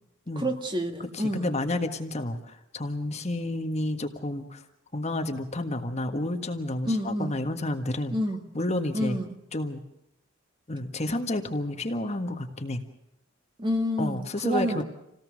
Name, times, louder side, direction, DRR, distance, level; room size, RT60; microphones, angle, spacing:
voice 1, 0.4-1.5 6.9-7.4 8.1-8.4 8.9-9.3 13.6-14.8, equal, 25° right, 4 dB, 2.0 m, -28 dB
voice 2, 1.1-4.6 4.9-8.2 8.6-9.2 9.5-9.8 10.7-12.8 14.0-14.8, left 1 dB, 35° left, 5 dB, 1.6 m, -30 dB
28.0 x 18.0 x 6.4 m, 0.82 s
head